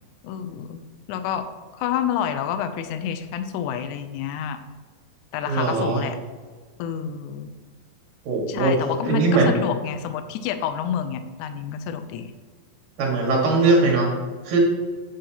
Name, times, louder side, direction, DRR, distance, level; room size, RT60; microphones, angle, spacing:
voice 1, 0.2-0.8 1.1-1.4 1.7-4.6 5.3-6.2 6.8-7.5 8.5-12.3, left 9 dB, 80° left, 9 dB, 1.8 m, -28 dB
voice 2, 5.5-6.0 8.3-8.8 9.0-9.5 13.0-14.1 14.4-14.6, right 3 dB, 75° right, -1 dB, 3.4 m, -20 dB
8.6 x 7.8 x 2.9 m, 1.5 s
omnidirectional pair, 4.0 m